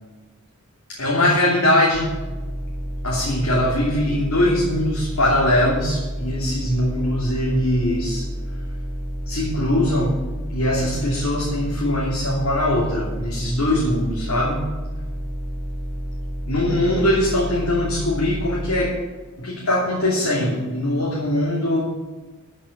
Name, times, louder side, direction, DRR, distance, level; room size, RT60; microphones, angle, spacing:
voice 1, 0.9-2.1 3.0-8.3 9.3-10.2 10.5-14.7 16.4-19.0 19.4-21.8, left 1 dB, 80° left, -6 dB, 3.0 m, -21 dB
sound 1, 1.9-18.9, equal, ahead, 0.7 m, -30 dB
13.5 x 6.3 x 7.4 m, 1.3 s
head